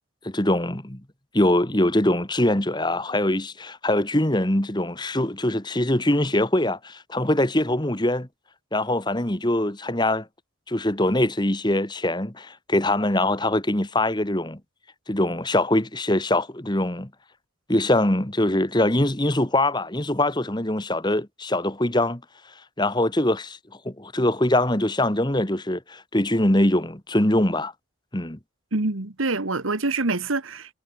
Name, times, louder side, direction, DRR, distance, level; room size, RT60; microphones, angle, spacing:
voice 1, 0.2-1.0 1.3-8.3 8.7-10.3 10.7-14.6 15.1-17.1 17.7-22.2 22.8-23.6 23.9-27.7 28.1-28.4, left 1 dB, 20° left, 1.8 m, -23 dB
voice 2, 28.7-30.7, right 3 dB, 90° right, 1.8 m, -26 dB
head